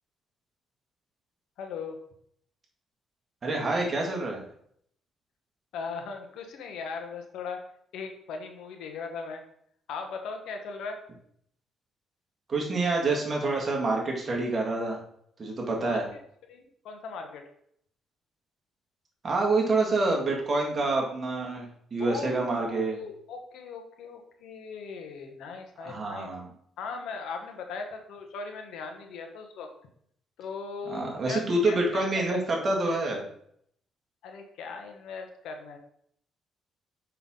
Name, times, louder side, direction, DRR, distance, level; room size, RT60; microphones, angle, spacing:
voice 1, 1.6-2.0 5.7-7.6 7.9-9.4 9.9-11.0 15.8-16.0 16.5-17.4 22.0-26.3 26.8-29.7 30.4-32.4 34.2-35.8, left 5 dB, 80° left, 4 dB, 1.0 m, -39 dB
voice 2, 3.4-4.4 12.5-15.0 15.4-16.0 19.2-23.0 25.8-26.5 30.9-33.2, right 2 dB, 40° right, -1 dB, 2.0 m, -27 dB
5.8 x 5.6 x 3.8 m, 0.68 s
cardioid pair, 90°, 0 cm